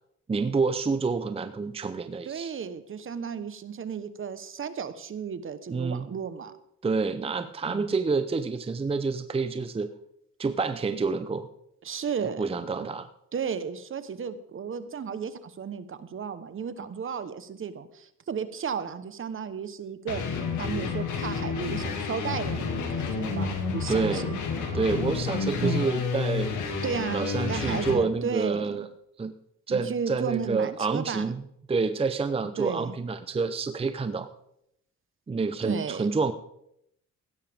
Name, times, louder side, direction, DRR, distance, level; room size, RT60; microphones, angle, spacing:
voice 1, 0.3-2.5 5.7-6.1 6.8-9.9 10.4-11.5 12.4-13.1 23.9-24.3 24.7-26.5 27.1-28.9 29.2-29.3 29.7-31.4 31.7-34.3 35.3-36.3, right 4 dB, 20° right, 10 dB, 0.6 m, -28 dB
voice 2, 2.2-6.5 7.6-7.9 11.8-12.9 13.3-20.2 20.6-24.4 25.6-25.9 26.8-28.9 29.7-31.3 32.6-32.9 35.6-36.1, right 6 dB, 45° right, 12 dB, 1.1 m, -34 dB
sound 1, 20.1-28.0, left 5 dB, 75° left, 2.5 m, -30 dB
16.0 x 12.0 x 3.6 m, 0.77 s
cardioid pair, 90°, 30 cm